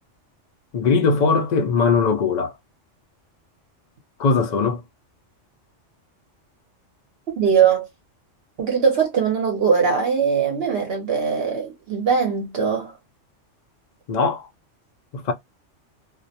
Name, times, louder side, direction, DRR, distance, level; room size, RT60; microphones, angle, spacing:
voice 1, 0.7-2.5 4.2-4.8 14.1-14.5 15.1-15.3, left 4 dB, 60° left, 0.4 m, -20 dB
voice 2, 7.4-7.9 8.6-12.9, right 6 dB, 60° right, 0.8 m, -20 dB
2.3 x 2.0 x 2.6 m
omnidirectional pair, 1.3 m